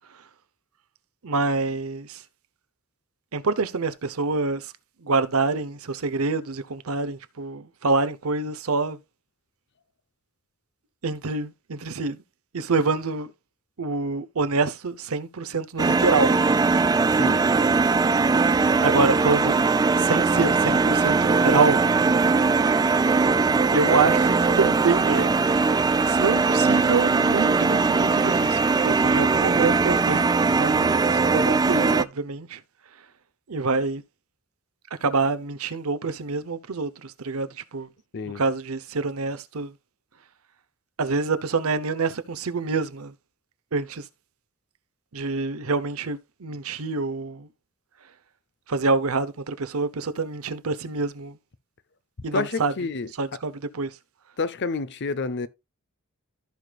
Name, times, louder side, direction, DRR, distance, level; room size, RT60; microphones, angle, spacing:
voice 1, 1.2-2.2 3.3-4.7 5.0-9.0 11.0-12.2 12.5-13.3 13.8-16.5 18.8-19.6 19.9-21.8 23.7-25.3 26.0-32.6 33.5-34.0 35.0-37.9 38.3-39.7 41.0-43.1 43.7-44.0 45.1-47.5 48.7-51.4 52.2-52.7 53.2-53.9, right 4 dB, 70° right, 0.8 m, -26 dB
sound 1, 15.8-32.0, right 4 dB, 20° right, 0.3 m, -20 dB
voice 2, 52.3-53.1 54.4-55.5, left 4 dB, 55° left, 0.7 m, -28 dB
15.0 x 5.1 x 2.4 m
head